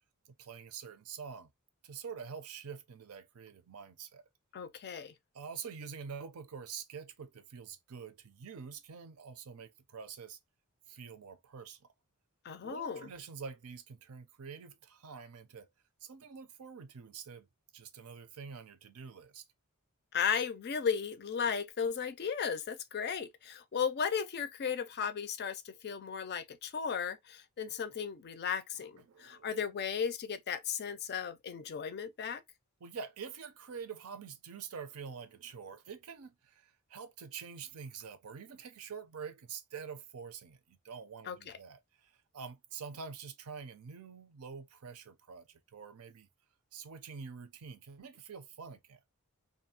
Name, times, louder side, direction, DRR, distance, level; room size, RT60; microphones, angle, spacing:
voice 1, 0.3-1.5 1.8-4.2 5.3-10.4 10.9-11.8 12.6-15.7 16.0-17.5 17.7-19.4 29.1-29.5 32.8-46.3 46.7-49.0, right 6 dB, 75° right, 0.5 m, -46 dB
voice 2, 4.5-5.1 12.4-13.1 20.1-32.4 41.3-41.6, left 7 dB, 45° left, 0.4 m, -35 dB
2.7 x 2.3 x 2.7 m
head